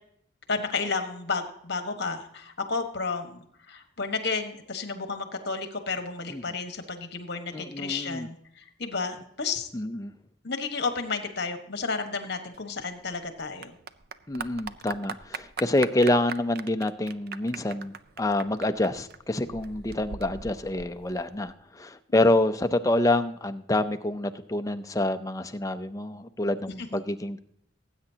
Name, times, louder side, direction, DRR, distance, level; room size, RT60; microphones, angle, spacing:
voice 1, 0.5-8.4 8.8-9.7 10.4-13.7 22.1-22.2 26.8-27.0, left 4 dB, 55° left, 7 dB, 1.4 m, -32 dB
voice 2, 7.5-8.3 9.7-10.1 14.3-27.4, left 1 dB, 15° left, 9 dB, 0.5 m, -27 dB
Clapping / Applause, 12.5-21.5, right 6 dB, 50° right, 0.5 m, -41 dB
19.0 x 8.8 x 2.8 m, 0.73 s
head